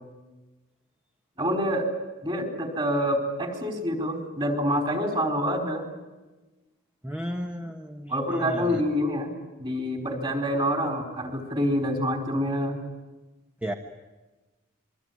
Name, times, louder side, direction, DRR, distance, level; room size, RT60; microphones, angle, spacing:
voice 1, 1.4-1.9 2.2-5.8 8.1-9.3 9.6-12.8, equal, 25° right, 4 dB, 4.5 m, -27 dB
voice 2, 7.0-8.8 13.6-13.7, equal, 5° right, 4 dB, 1.3 m, -34 dB
26.5 x 23.5 x 9.5 m, 1.2 s
head